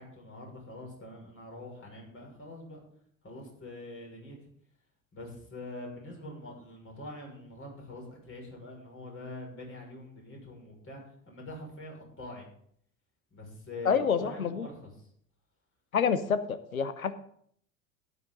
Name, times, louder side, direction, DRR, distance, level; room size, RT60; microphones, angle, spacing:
voice 1, 0.0-2.8 3.2-4.4 5.1-12.4 13.3-15.1, left 1 dB, 30° left, 0 dB, 6.1 m, -44 dB
voice 2, 13.8-14.7 15.9-17.1, left 6 dB, 85° left, 12 dB, 1.0 m, -28 dB
13.0 x 10.0 x 4.0 m, 0.65 s
figure-of-eight pair, 65°, 41 cm